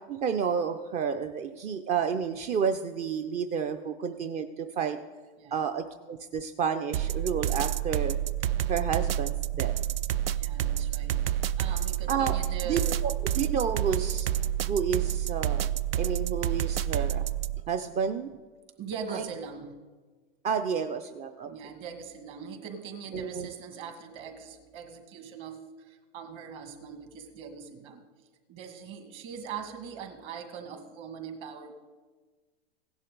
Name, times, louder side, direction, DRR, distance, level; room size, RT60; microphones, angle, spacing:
voice 1, 0.1-5.0 5.5-8.2 8.7-9.7 12.1-12.4 12.7-14.3 14.6-15.7 16.0-17.2 17.7-18.3 19.1-19.2 20.4-21.5 23.1-23.5, right 6 dB, 20° right, 8 dB, 0.4 m, -30 dB
sound 1, 6.9-17.6, right 11 dB, 70° right, 0.6 m, -29 dB
voice 2, 10.3-13.0 18.8-19.8 21.5-28.1 28.5-31.7, right 6 dB, 45° right, 5 dB, 2.0 m, -41 dB
16.5 x 11.0 x 3.9 m, 1.3 s
hypercardioid pair, 125°, 30 cm